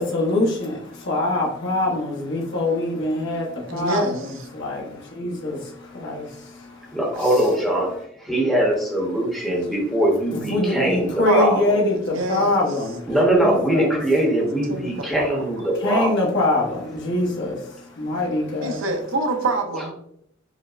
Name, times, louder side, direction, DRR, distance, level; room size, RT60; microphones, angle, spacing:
voice 1, 0.0-6.5 10.3-13.9 15.8-17.6 18.0-18.9, left 2 dB, 60° left, 0.8 m, -24 dB
voice 2, 3.7-4.5 11.2-11.7 12.0-12.6 14.7-15.4 18.6-19.9, right 2 dB, 70° right, 0.6 m, -26 dB
voice 3, 6.9-7.9 8.2-11.7 13.1-16.1, right 1 dB, ahead, 0.8 m, -21 dB
4.8 x 2.0 x 2.3 m
head